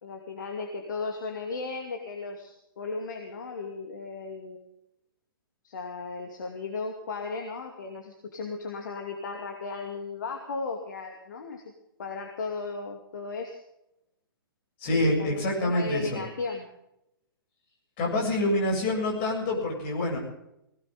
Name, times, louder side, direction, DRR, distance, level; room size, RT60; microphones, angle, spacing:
voice 1, 0.0-4.6 5.6-11.7 12.0-13.6 14.9-16.7, left 4 dB, 55° left, 3 dB, 2.5 m, -36 dB
voice 2, 14.8-16.2 18.0-20.2, left 1 dB, 35° left, 1 dB, 7.4 m, -26 dB
20.5 x 17.5 x 3.8 m, 0.82 s
figure-of-eight pair, 115°, 12 cm